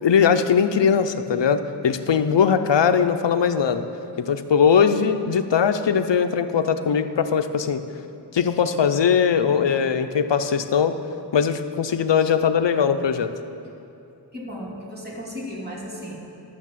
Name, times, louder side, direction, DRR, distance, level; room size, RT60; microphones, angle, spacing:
voice 1, 0.0-3.8 4.2-7.8 8.3-11.0 11.3-13.3, left 7 dB, 75° left, 9 dB, 0.6 m, -20 dB
voice 2, 14.3-16.2, equal, 20° right, -6 dB, 2.7 m, -35 dB
11.5 x 6.4 x 7.5 m, 2.7 s
wide cardioid pair, 60°, 44 cm